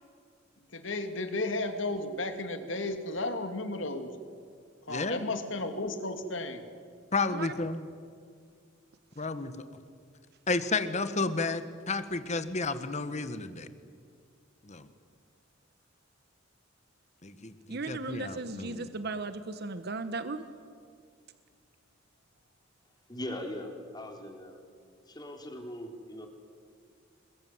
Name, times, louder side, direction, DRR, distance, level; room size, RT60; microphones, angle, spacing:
voice 1, 0.7-4.1 4.9-6.6, left 2 dB, 70° left, 7 dB, 2.6 m, -33 dB
voice 2, 4.9-5.2 7.1-7.8 9.2-9.5 10.5-13.7 14.6-14.9 17.2-18.9, left 3 dB, 35° left, 10 dB, 1.6 m, -32 dB
voice 3, 17.7-20.4, right 3 dB, 55° right, 10 dB, 1.1 m, -36 dB
voice 4, 23.1-24.6 25.1-26.3, left 1 dB, 20° left, 3 dB, 3.6 m, -40 dB
27.5 x 21.5 x 9.5 m, 2.1 s
head